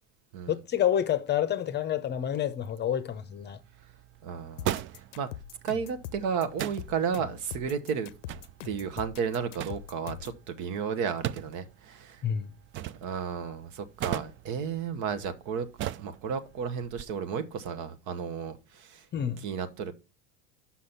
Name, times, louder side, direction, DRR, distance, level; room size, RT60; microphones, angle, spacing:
voice 1, 0.5-3.6 12.2-12.5 19.1-19.4, left 10 dB, 30° left, 0.7 m, -28 dB
sound 1, 2.9-17.0, right 12 dB, 35° right, 0.4 m, -40 dB
voice 2, 4.2-5.3 5.6-8.1 8.6-12.2 13.0-15.7 16.0-19.1 19.4-19.9, right 6 dB, 55° right, 1.1 m, -33 dB
sound 2, 4.6-10.4, left 12 dB, 85° left, 0.6 m, -42 dB
6.2 x 5.8 x 5.7 m
hypercardioid pair, 100°, 36 cm